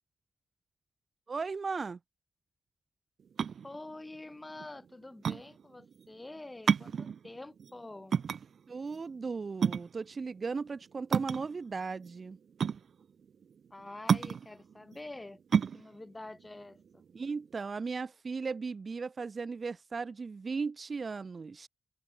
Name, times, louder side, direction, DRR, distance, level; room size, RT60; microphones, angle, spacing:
voice 1, 1.3-2.0 8.7-12.4 17.1-21.7, right 4 dB, 35° right, 3.2 m, -36 dB
sound 1, 3.2-17.6, right 7 dB, 60° right, 0.5 m, -32 dB
voice 2, 3.6-8.2 13.7-15.4 15.7-17.0, left 2 dB, 15° left, 5.9 m, -47 dB
wide cardioid pair, 125°, 0 cm